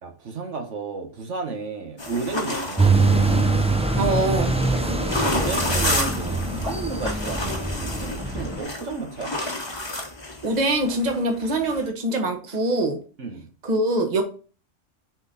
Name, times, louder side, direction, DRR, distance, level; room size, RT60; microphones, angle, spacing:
voice 1, 0.0-3.6 4.7-9.3 13.2-13.5, right 4 dB, 75° right, 4 dB, 1.5 m, -33 dB
sound 1, 2.0-11.9, left 2 dB, 25° left, 1.1 m, -31 dB
sound 2, 2.8-8.6, right 3 dB, 5° right, 0.5 m, -23 dB
voice 2, 4.0-4.5 10.4-13.0 13.6-14.2, right 1 dB, 35° right, 4 dB, 1.3 m, -23 dB
6.9 x 4.1 x 4.0 m, 0.36 s
omnidirectional pair, 1.3 m